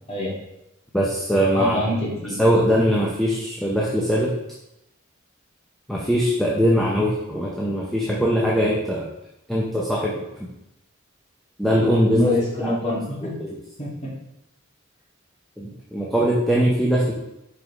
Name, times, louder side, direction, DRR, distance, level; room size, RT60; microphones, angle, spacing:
voice 1, 0.9-1.8 2.4-4.3 5.9-9.1 9.5-10.3 11.6-12.3 12.6-12.7 13.2-13.5 15.6-17.1, equal, ahead, -5 dB, 0.8 m, -21 dB
voice 2, 1.5-2.3 11.7-13.3 13.8-14.1, left 1 dB, 30° left, -5 dB, 2.1 m, -25 dB
5.4 x 5.2 x 4.7 m, 0.86 s
head